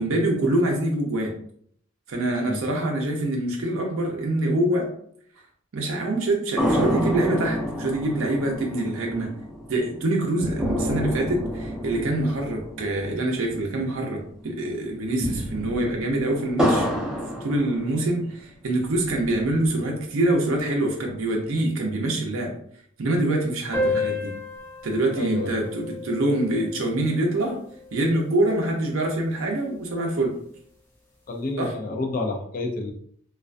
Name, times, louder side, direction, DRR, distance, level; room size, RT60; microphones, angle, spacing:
voice 1, 0.0-1.3 2.1-4.9 5.7-9.3 9.7-16.9 17.4-22.5 23.0-24.3 24.8-27.6 27.9-30.4 31.6-31.7, right 1 dB, 70° right, 0 dB, 0.5 m, -25 dB
sound 1, 6.6-14.2 14.4-14.5 15.0-18.3 18.8-19.8, equal, 5° right, 0.7 m, -29 dB
sound 2, 23.7-28.7, left 2 dB, 20° left, 1.0 m, -32 dB
voice 2, 25.2-25.5 31.3-32.9, left 2 dB, 40° left, 1 dB, 0.4 m, -29 dB
2.3 x 2.2 x 2.4 m, 0.63 s
head